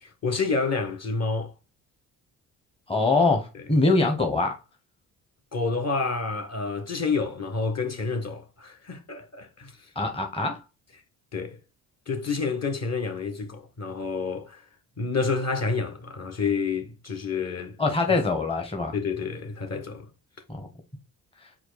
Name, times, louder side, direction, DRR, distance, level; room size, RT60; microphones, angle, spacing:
voice 1, 0.0-1.5 5.5-9.9 11.3-11.6 12.1-14.6 15.0-17.8 18.9-20.1, left 4 dB, 35° left, 1.3 m, -29 dB
voice 2, 2.9-4.6 9.9-10.6 17.8-18.9 20.5-20.7 21.4-21.5, left 3 dB, 15° left, 1.0 m, -23 dB
4.5 x 2.4 x 4.0 m
supercardioid pair, 60°, 44 cm